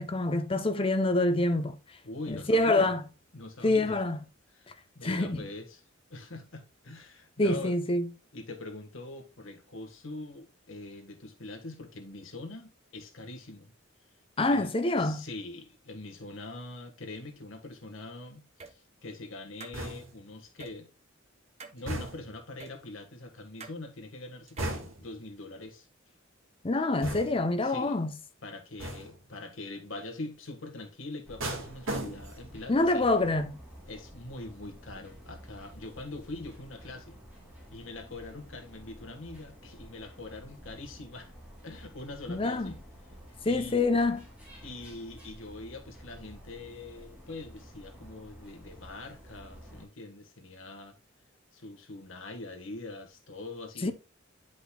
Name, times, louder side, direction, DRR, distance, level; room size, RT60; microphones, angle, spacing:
voice 1, 0.0-1.8 2.3-3.0 3.6-4.2 5.0-5.4 7.4-8.1 14.4-15.2 26.6-28.1 32.7-33.6 42.3-42.7 43.4-44.2 53.8-53.9, left 2 dB, 30° left, 0.7 m, -26 dB
voice 2, 2.0-2.9 3.3-4.0 4.5-5.8 6.1-7.7 8.3-13.7 14.5-14.7 15.0-20.9 21.7-25.9 27.6-28.0 28.4-33.1 33.9-37.1 37.7-41.3 41.6-42.7 43.4-43.8 44.6-50.9 51.5-53.9, left 2 dB, 80° left, 1.5 m, -43 dB
sound 1, 18.6-18.7 19.6-19.8 20.6-20.7 21.6-21.8 22.6-22.7 23.6-23.8 24.5-24.8, right 4 dB, 35° right, 0.8 m, -46 dB
sound 2, 19.7-20.3 21.9-22.4 24.6-25.2 27.0-27.6 28.8-29.3 31.4-32.5 32.9-33.3, right 1 dB, 85° right, 1.8 m, -37 dB
sound 3, 31.2-49.9, equal, 5° right, 2.7 m, -51 dB
10.0 x 5.2 x 2.3 m
head